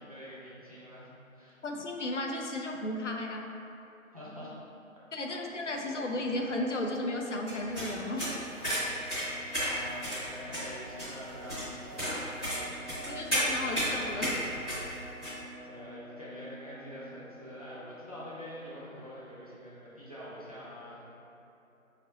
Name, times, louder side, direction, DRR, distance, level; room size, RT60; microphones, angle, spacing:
voice 1, 0.0-1.6 4.1-4.5 5.2-5.3 5.9-6.0 9.6-12.8 15.6-21.1, equal, 25° right, -9 dB, 0.6 m, -46 dB
voice 2, 1.6-3.5 5.1-8.3 13.1-14.4, left 1 dB, 60° left, 2 dB, 0.5 m, -34 dB
sound 1, 5.6-18.8, right 1 dB, 55° right, 0.9 m, -48 dB
sound 2, 7.5-15.3, equal, 5° left, 0.9 m, -33 dB
4.9 x 3.2 x 2.8 m, 3.0 s
figure-of-eight pair, 155°, 42 cm